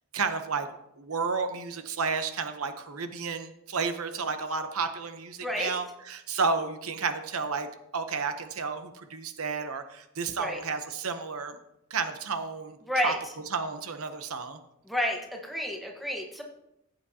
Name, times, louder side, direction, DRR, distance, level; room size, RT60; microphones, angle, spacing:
voice 1, 0.1-0.7 1.0-7.7 7.9-11.6 11.9-12.8 13.0-13.1 13.5-14.6, right 5 dB, 85° right, 8 dB, 0.9 m, -31 dB
voice 2, 12.9-13.2 14.9-16.4, equal, ahead, 1 dB, 1.3 m, -30 dB
15.5 x 8.0 x 2.9 m, 0.83 s
head